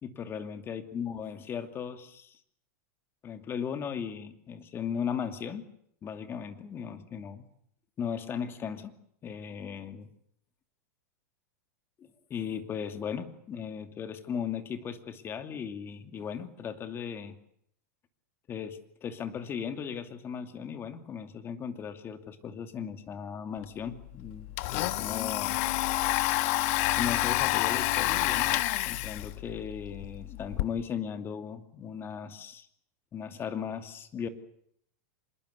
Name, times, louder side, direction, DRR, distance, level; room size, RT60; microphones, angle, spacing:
voice 1, 0.0-2.4 3.2-5.7 6.0-7.5 8.0-8.9 9.2-10.1 12.0-17.4 18.5-25.6 27.0-32.7 33.1-34.3, left 7 dB, 25° left, 8 dB, 2.6 m, -37 dB
Domestic sounds home sounds, 23.6-23.7 24.0-30.6, left 17 dB, 55° left, 1.5 m, -29 dB
26.0 x 21.5 x 8.4 m, 0.69 s
supercardioid pair, 130°, 9 cm